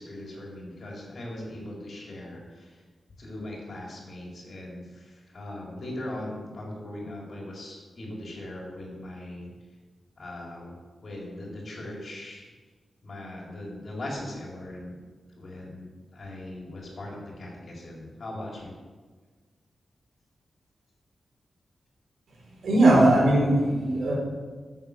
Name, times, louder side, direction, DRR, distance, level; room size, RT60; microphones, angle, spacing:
voice 1, 0.0-2.8 3.2-9.5 10.2-10.7 11.0-12.5 13.0-15.0 15.4-18.7, left 1 dB, 50° left, -3 dB, 4.0 m, -39 dB
voice 2, 22.6-24.2, right 1 dB, 85° right, -3 dB, 4.3 m, -19 dB
10.5 x 8.3 x 7.3 m, 1.4 s
wide cardioid pair, 140°, 0 cm